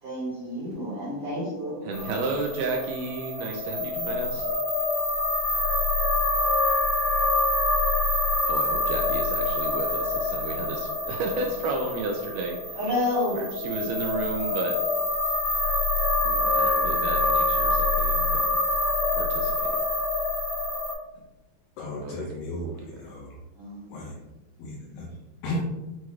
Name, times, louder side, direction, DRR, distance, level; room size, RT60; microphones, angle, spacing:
voice 1, 0.0-1.9 12.7-13.4 23.6-23.8, left 1 dB, 55° right, -10 dB, 1.8 m, -29 dB
voice 2, 1.8-4.5 8.4-12.8 13.3-14.8 16.2-18.5 19.1-19.7 22.0-22.4 22.6-23.0, right 3 dB, 85° right, 2 dB, 1.9 m, -33 dB
sound 1, 1.9-20.9, left 2 dB, 55° left, 1.9 m, -26 dB
voice 3, 21.8-23.3 23.9-24.2 24.6-25.1 25.4-25.7, left 1 dB, 75° left, -4 dB, 2.4 m, -34 dB
7.6 x 3.0 x 2.3 m, 1.0 s
omnidirectional pair, 4.2 m